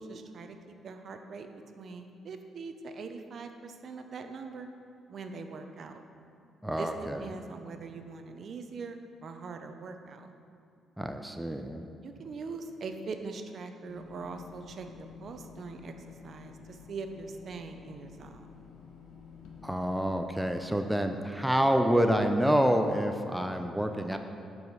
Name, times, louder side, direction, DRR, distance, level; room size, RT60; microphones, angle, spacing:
voice 1, 0.0-1.5 1.8-4.7 5.1-6.0 6.8-10.3 12.0-15.9 16.2-18.5, right 4 dB, 55° right, 6 dB, 0.6 m, -42 dB
voice 2, 6.6-7.2 11.0-11.8 19.6-24.2, equal, 5° right, 5 dB, 0.4 m, -27 dB
sound 1, 13.9-20.8, left 6 dB, 75° left, 1.0 m, -50 dB
7.8 x 4.9 x 5.4 m, 2.5 s
cardioid pair, 90°, 0 cm